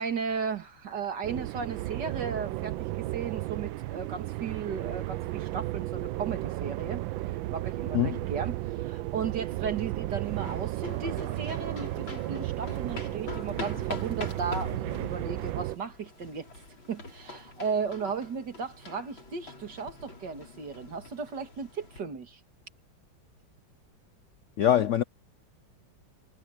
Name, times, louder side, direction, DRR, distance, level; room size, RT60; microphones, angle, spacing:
voice 1, 0.0-7.0 7.5-16.5 16.9-22.4, right 6 dB, 65° right, 2.6 m, -35 dB
sound 1, 1.2-15.8, right 17 dB, 85° right, 1.4 m, -34 dB
sound 2, 10.2-22.0, left 2 dB, 90° left, 5.7 m, -44 dB
voice 2, 24.6-25.0, left 11 dB, 70° left, 0.7 m, -23 dB
omnidirectional pair, 2.1 m